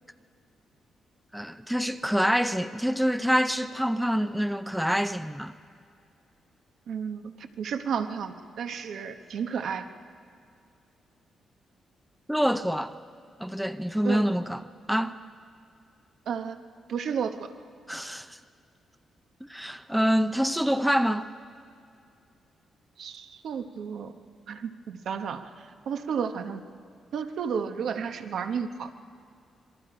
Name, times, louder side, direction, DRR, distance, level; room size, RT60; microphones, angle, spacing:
voice 1, 1.3-5.5 12.3-12.9 13.4-14.6 14.9-15.1 17.9-18.4 19.5-21.3, equal, ahead, 0.5 m, -26 dB
voice 2, 6.9-9.9 14.0-14.3 16.3-16.6 16.9-17.5 23.0-24.1 24.5-26.6 27.1-28.9, right 7 dB, 70° right, 1.1 m, -32 dB
26.5 x 22.0 x 5.0 m
cardioid pair, 140°, 0 cm